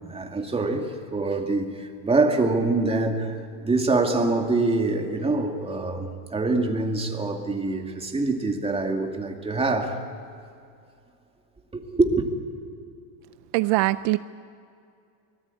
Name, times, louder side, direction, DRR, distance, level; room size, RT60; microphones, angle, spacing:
voice 1, 0.1-10.0 11.7-12.3, right 3 dB, 15° right, 2.3 m, -25 dB
voice 2, 13.5-14.2, right 19 dB, 65° right, 0.6 m, -22 dB
24.5 x 19.5 x 8.4 m
cardioid pair, 135°, 44 cm